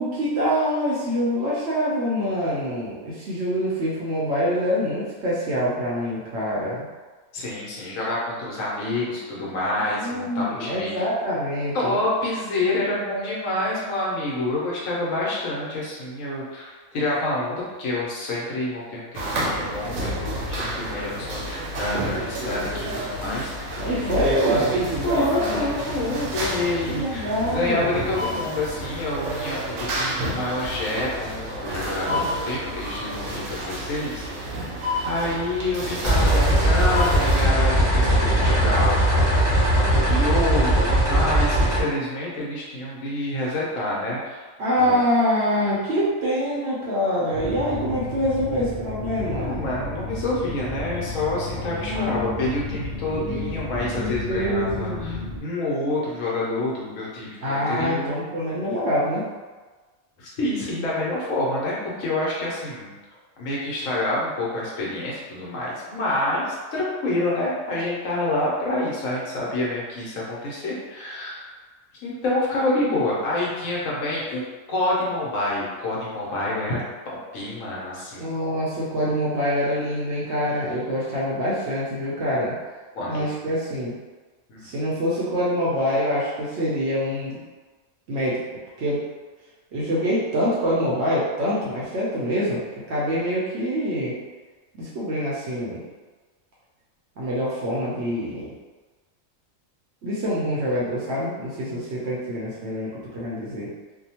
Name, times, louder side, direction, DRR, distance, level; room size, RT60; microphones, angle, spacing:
voice 1, 0.0-6.9 10.0-12.0 23.8-24.8 26.9-27.9 44.6-49.5 51.8-52.4 53.1-53.5 54.0-55.3 57.4-59.3 78.2-82.5 83.1-83.9 84.6-87.4 88.1-88.4 88.8-89.0 89.7-92.6 92.9-94.1 94.7-95.8 97.2-98.5 100.0-103.7, equal, 60° right, -7 dB, 0.7 m, -25 dB
voice 2, 7.3-11.0 11.7-24.2 25.0-34.5 35.0-44.4 44.8-45.0 49.2-55.1 55.4-58.1 60.2-62.9 63.4-71.5 72.0-74.4 74.7-78.3 82.9-83.6 84.5-84.7, left 2 dB, 70° left, -6 dB, 1.1 m, -27 dB
sound 1, 19.1-37.4, right 1 dB, 80° right, 1.1 m, -29 dB
sound 2, 36.0-41.8, right 1 dB, 5° right, 0.8 m, -19 dB
sound 3, 47.3-55.4, left 2 dB, 55° left, 0.7 m, -33 dB
2.7 x 2.1 x 2.8 m, 1.3 s
omnidirectional pair, 1.5 m